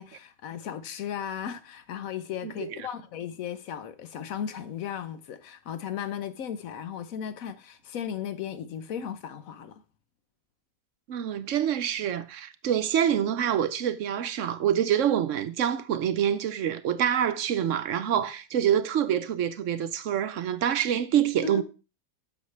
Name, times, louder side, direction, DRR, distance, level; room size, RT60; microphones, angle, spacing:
voice 1, 0.0-9.8 21.4-21.6, left 8 dB, 70° left, 1.2 m, -36 dB
voice 2, 2.4-2.8 11.1-21.6, right 9 dB, 65° right, 1.0 m, -26 dB
10.5 x 7.3 x 3.2 m
omnidirectional pair, 1.5 m